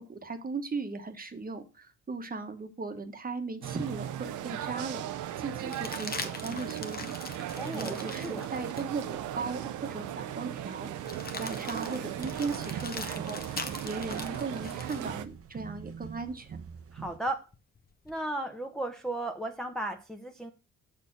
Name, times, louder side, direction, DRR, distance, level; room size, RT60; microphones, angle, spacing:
voice 1, 0.1-7.2 7.4-10.9 11.4-16.6, right 4 dB, 30° right, 1.3 m, -37 dB
sound 1, 3.6-15.3, right 11 dB, 80° right, 0.7 m, -37 dB
sound 2, 5.6-9.1 9.6-9.7 11.0-15.1 17.3-18.1, left 4 dB, 30° left, 1.1 m, -42 dB
voice 2, 7.6-8.5 16.9-17.4 18.1-20.5, right 1 dB, ahead, 0.9 m, -35 dB
sound 3, 12.2-17.2, right 7 dB, 50° right, 0.9 m, -44 dB
7.3 x 4.3 x 6.1 m
cardioid pair, 90°, 30 cm